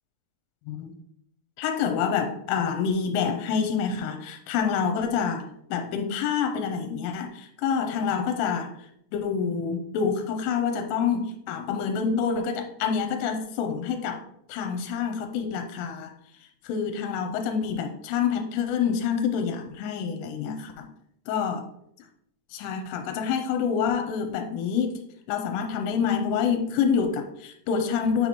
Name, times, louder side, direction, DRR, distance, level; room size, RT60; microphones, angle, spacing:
voice 1, 1.6-14.2 14.5-16.1 16.6-20.9 21.3-21.6 22.5-28.3, left 6 dB, 85° left, 5 dB, 3.1 m, -27 dB
9.2 x 4.1 x 3.0 m, 0.74 s
omnidirectional pair, 5.7 m